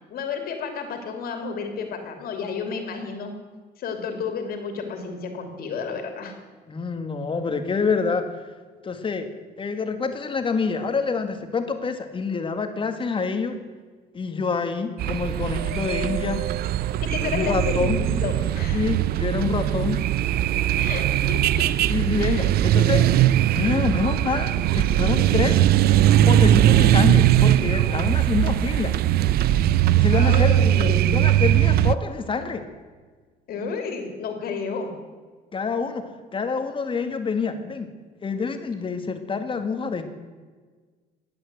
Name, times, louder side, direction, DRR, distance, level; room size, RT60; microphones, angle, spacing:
voice 1, 0.1-3.3 3.8-6.3 16.0-16.1 16.8-18.8 20.8-21.7 22.2-22.5 22.8-23.1 23.6-23.9 30.1-31.2 33.5-34.9, left 5 dB, 65° left, 5 dB, 2.9 m, -31 dB
voice 2, 6.7-8.3 8.8-9.3 9.6-13.6 14.1-16.4 17.2-18.0 18.7-20.0 21.9-23.1 23.5-25.6 26.3-28.9 30.0-30.5 31.0-32.6 35.5-36.0 36.3-37.9 38.2-40.0, left 5 dB, 30° left, 7 dB, 1.7 m, -26 dB
sound 1, 15.0-32.0, right 12 dB, 65° right, 0.5 m, -20 dB
16.0 x 9.6 x 8.0 m, 1.5 s
cardioid pair, 110°, 17 cm